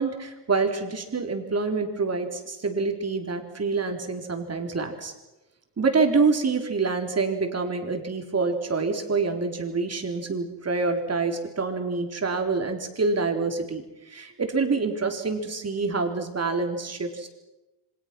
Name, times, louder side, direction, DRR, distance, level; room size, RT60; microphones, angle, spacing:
voice 1, 0.0-5.1 5.8-17.3, right 4 dB, 35° right, 4 dB, 4.1 m, -26 dB
28.5 x 25.0 x 6.2 m, 1.0 s
cardioid pair, 120°, 44 cm